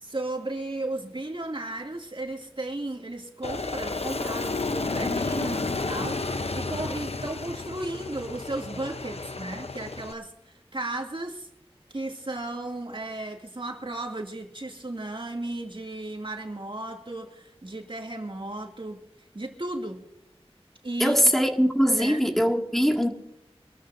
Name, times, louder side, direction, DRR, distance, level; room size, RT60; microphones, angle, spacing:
voice 1, 0.0-11.5 11.9-19.0 19.3-20.1 20.8-21.2 21.9-22.2, right 2 dB, 55° right, 2.4 m, -35 dB
Aircraft, 3.4-10.1, left 3 dB, 75° left, 0.8 m, -31 dB
voice 2, 21.0-23.1, equal, ahead, 2.1 m, -22 dB
25.0 x 13.5 x 2.7 m
wide cardioid pair, 40°, 11 cm